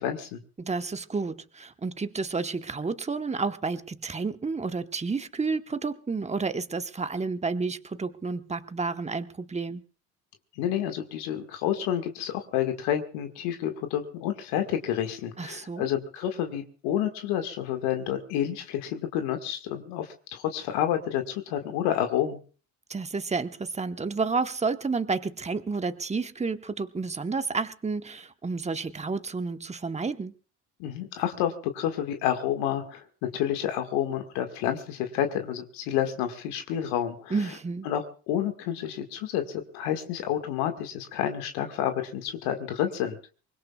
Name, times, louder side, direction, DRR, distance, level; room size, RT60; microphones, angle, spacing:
voice 1, 0.0-0.4 10.6-22.4 30.8-37.4 37.9-43.2, left 10 dB, 85° left, 6 dB, 1.9 m, -29 dB
voice 2, 0.6-9.8 15.4-15.9 22.9-30.3 37.3-37.9, right 4 dB, 15° right, 9 dB, 1.1 m, -30 dB
24.0 x 20.5 x 2.4 m, 0.39 s
supercardioid pair, 75°, 39 cm